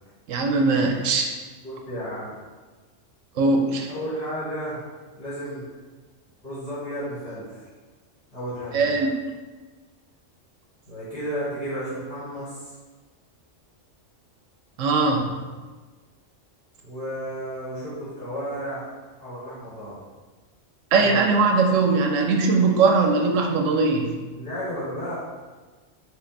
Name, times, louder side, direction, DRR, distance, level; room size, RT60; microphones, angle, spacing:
voice 1, 0.3-1.3 3.4-3.9 8.7-9.1 14.8-15.3 20.9-24.2, right 4 dB, 85° right, 2 dB, 1.0 m, -20 dB
voice 2, 1.6-2.4 3.9-4.8 5.2-5.7 6.4-7.6 8.3-9.1 10.9-12.7 16.8-18.9 19.2-20.0 21.0-21.4 24.3-25.2, equal, 60° left, -10 dB, 1.6 m, -33 dB
5.3 x 2.4 x 3.9 m, 1.3 s
omnidirectional pair, 1.3 m